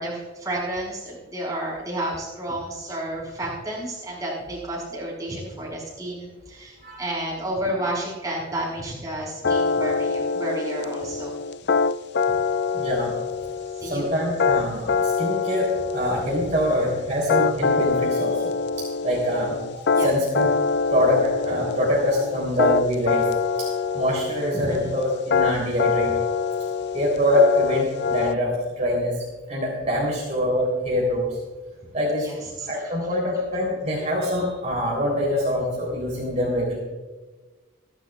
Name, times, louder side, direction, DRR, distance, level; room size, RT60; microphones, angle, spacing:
voice 1, 0.0-11.3 13.8-14.0 19.9-20.1 24.5-24.9 32.2-32.7, right 1 dB, 15° right, -3 dB, 5.6 m, -31 dB
sound 1, 9.4-28.3, left 5 dB, 55° left, 0.4 m, -25 dB
voice 2, 12.7-13.1 13.8-20.5 20.9-23.3 23.6-26.1 26.9-29.2 29.5-31.3 31.9-32.3 32.7-36.8, left 1 dB, 35° right, -4 dB, 3.5 m, -24 dB
28.5 x 11.5 x 2.4 m, 1.3 s
head